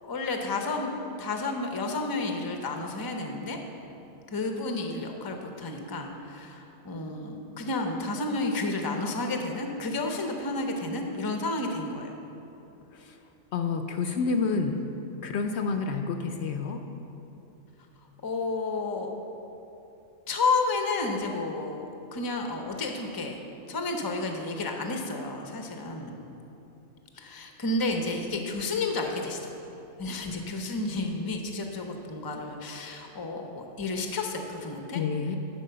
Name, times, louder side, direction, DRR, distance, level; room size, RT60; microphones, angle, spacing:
voice 1, 0.0-0.9 1.2-3.6 4.3-12.2 18.2-19.1 20.3-23.4 23.7-26.2 27.2-29.6 30.0-35.0, left 3 dB, 25° left, 3 dB, 0.6 m, -31 dB
voice 2, 13.5-15.0 15.2-16.8 34.9-35.4, left 4 dB, 65° left, 5 dB, 0.8 m, -29 dB
11.5 x 4.6 x 6.7 m, 2.9 s
omnidirectional pair, 1.3 m